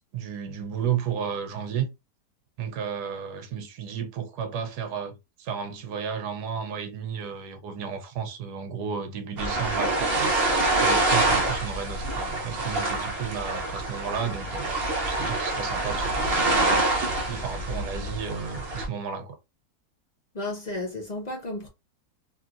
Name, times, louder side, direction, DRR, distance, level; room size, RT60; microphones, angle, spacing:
voice 1, 0.1-1.9 2.6-10.3 10.8-14.7 15.0-16.8 17.3-19.4, right 7 dB, 75° right, 1.2 m, -33 dB
sound 1, 9.4-18.9, right 2 dB, 50° right, 0.8 m, -26 dB
voice 2, 20.3-21.7, left 2 dB, 55° left, 0.4 m, -33 dB
2.9 x 2.7 x 2.4 m
omnidirectional pair, 1.7 m